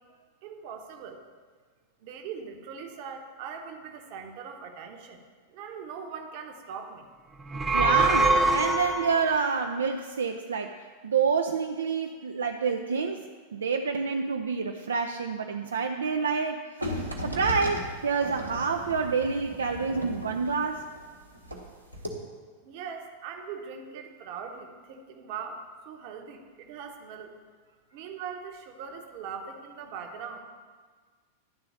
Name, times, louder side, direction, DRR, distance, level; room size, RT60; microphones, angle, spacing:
voice 1, 0.4-1.2 2.0-5.2 5.5-7.1 22.6-27.4 27.9-30.4, right 6 dB, 45° right, 4 dB, 1.0 m, -41 dB
sound 1, 7.4-9.3, right 2 dB, 15° right, 0.5 m, -24 dB
voice 2, 7.7-10.8 11.0-20.8, right 5 dB, 70° right, 4 dB, 0.4 m, -28 dB
sound 2, 16.8-21.7 21.9-22.1, equal, 85° right, 1.2 m, -36 dB
11.0 x 3.8 x 7.0 m, 1.5 s
figure-of-eight pair, 90°, 0 cm